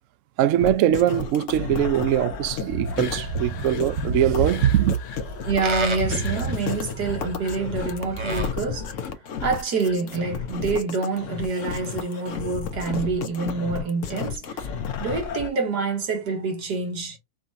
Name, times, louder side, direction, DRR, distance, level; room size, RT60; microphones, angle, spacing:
voice 1, 0.4-5.0, right 11 dB, 65° right, 0.8 m, -22 dB
sound 1, 0.6-15.5, left 7 dB, 60° left, 1.0 m, -32 dB
Livestock farm animals working animals, 2.6-8.5, right 2 dB, 25° right, 0.7 m, -30 dB
voice 2, 5.4-8.9 9.4-14.7 15.0-17.2, right 4 dB, 90° right, 2.1 m, -27 dB
4.9 x 2.8 x 3.6 m
omnidirectional pair, 1.7 m